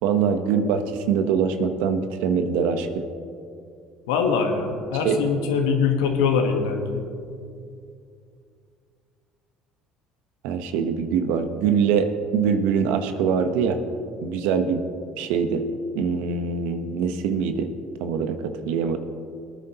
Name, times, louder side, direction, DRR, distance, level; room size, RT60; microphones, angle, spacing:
voice 1, 0.0-3.0 5.0-5.2 10.4-13.8 14.2-14.8 15.2-15.7 15.9-17.7 18.0-19.0, right 6 dB, 75° right, 8 dB, 0.9 m, -23 dB
voice 2, 4.1-7.1, left 5 dB, 90° left, 4 dB, 1.3 m, -23 dB
19.5 x 9.4 x 2.9 m, 2.4 s
supercardioid pair, 75°, 2 cm